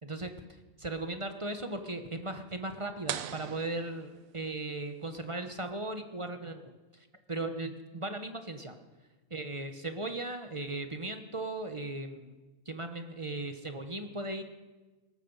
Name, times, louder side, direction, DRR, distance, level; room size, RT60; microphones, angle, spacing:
voice 1, 0.0-0.3 0.8-8.8 9.3-12.4 12.7-14.4, right 2 dB, 25° right, 7 dB, 0.9 m, -37 dB
sound 1, 3.1-4.8, right 10 dB, 85° right, 1.1 m, -40 dB
18.5 x 9.2 x 7.2 m, 1.2 s
omnidirectional pair, 1.4 m